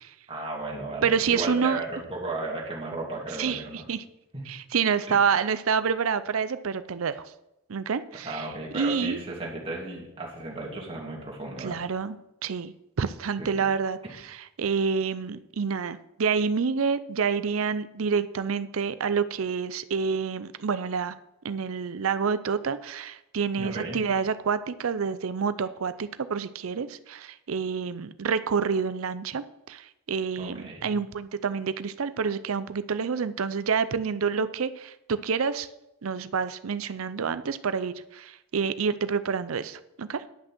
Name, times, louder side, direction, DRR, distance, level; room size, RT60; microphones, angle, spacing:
voice 1, 0.3-3.8 4.3-4.4 5.1-5.2 8.2-11.8 13.4-13.7 23.6-24.0 30.4-30.9, right 2 dB, 25° right, -3 dB, 2.7 m, -35 dB
voice 2, 1.0-1.8 3.4-3.6 3.9-4.0 4.5-7.3 7.7-8.5 8.7-9.2 11.6-12.2 12.4-21.1 21.4-35.7 36.0-40.2, right 6 dB, 85° right, 13 dB, 0.5 m, -28 dB
10.5 x 6.2 x 6.0 m, 0.88 s
head